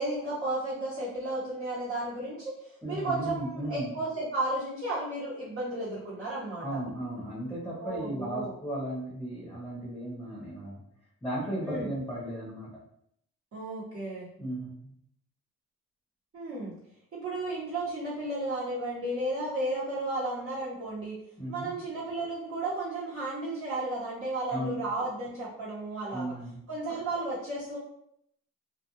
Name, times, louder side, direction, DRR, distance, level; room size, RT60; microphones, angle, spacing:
voice 1, 0.0-6.8 7.8-8.5 11.6-11.9 13.5-14.3 16.3-16.7 17.1-21.2 21.5-26.2 26.7-27.8, right 2 dB, 45° right, -10 dB, 1.1 m, -33 dB
voice 2, 2.8-3.9 6.6-10.8 11.2-12.7 14.4-14.7 21.4-21.7 24.5-24.8 26.1-26.6, right 1 dB, 5° left, -5 dB, 0.9 m, -35 dB
2.5 x 2.2 x 3.0 m, 0.71 s
cardioid pair, 90°, 30 cm